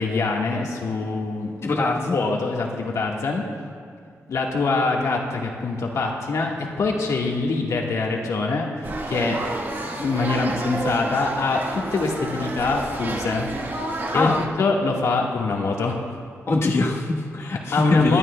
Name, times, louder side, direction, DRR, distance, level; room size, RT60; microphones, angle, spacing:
voice 1, 0.0-1.7 2.1-3.4 4.3-9.4 9.9-13.5 14.1-16.0 17.7-18.2, left 3 dB, 80° left, 0 dB, 1.5 m, -24 dB
voice 2, 1.6-2.2 14.1-14.4 16.5-18.2, left 2 dB, 55° left, -2 dB, 1.2 m, -23 dB
sound 1, 8.8-14.5, right 2 dB, 40° right, 1.2 m, -30 dB
21.5 x 12.5 x 2.2 m, 2.2 s
wide cardioid pair, 105°, 5 cm